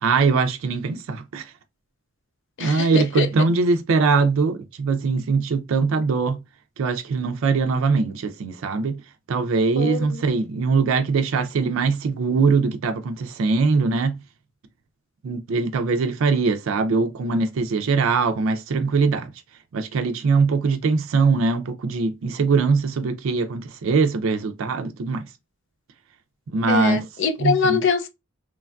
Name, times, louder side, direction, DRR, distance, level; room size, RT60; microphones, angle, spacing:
voice 1, 0.0-1.4 2.6-6.4 6.8-9.0 9.3-14.2 15.2-19.3 19.7-25.3 26.5-27.0 27.4-27.8, right 4 dB, 70° right, 0.4 m, -22 dB
voice 2, 2.6-3.3 9.8-10.0 26.7-28.1, left 5 dB, 60° left, 0.5 m, -23 dB
3.1 x 2.2 x 2.4 m
head